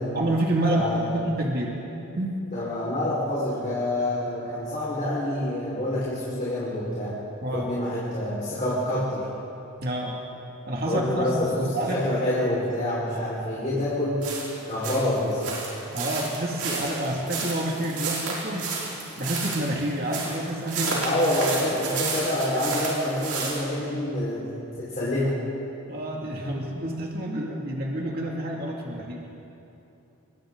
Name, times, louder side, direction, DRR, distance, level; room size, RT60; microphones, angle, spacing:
voice 1, 0.1-1.7 2.2-2.4 7.4-7.7 9.8-10.2 10.7-12.0 15.9-18.7 19.2-21.2 25.9-29.2, right 1 dB, 45° right, -2 dB, 2.4 m, -28 dB
voice 2, 0.7-1.1 2.5-7.1 7.5-9.3 10.9-14.2 14.7-15.5 21.0-25.3, left 1 dB, 35° left, -8 dB, 4.7 m, -27 dB
sound 1, 14.2-23.6, right 4 dB, 90° right, 6.7 m, -31 dB
29.0 x 23.0 x 3.9 m, 2.9 s
head